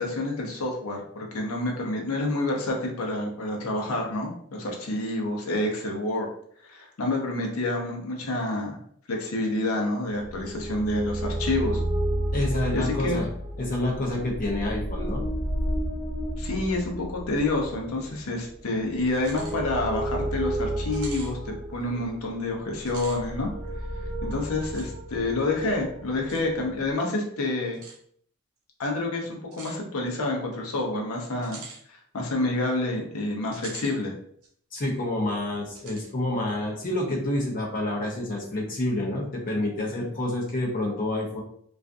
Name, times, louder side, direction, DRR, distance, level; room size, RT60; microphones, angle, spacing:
voice 1, 0.0-6.3 6.6-8.8 9.1-11.8 12.7-13.2 16.4-23.5 24.2-27.8 28.8-31.6 31.9-34.1, left 2 dB, 75° left, 0 dB, 0.6 m, -28 dB
sound 1, 10.2-26.9, right 1 dB, 35° right, 0.8 m, -32 dB
voice 2, 12.3-13.3 13.6-15.3 34.7-41.4, left 1 dB, 40° left, -1 dB, 0.6 m, -28 dB
sound 2, 19.1-19.6 20.0-20.1 20.9-21.3 22.8-23.2 24.7-24.9 26.3-26.4 27.7-28.0 29.5-29.8 31.4-31.8 33.5-34.0 34.4-34.5 35.8-36.1, right 4 dB, 80° right, 0.5 m, -43 dB
2.4 x 2.3 x 2.5 m, 0.64 s
head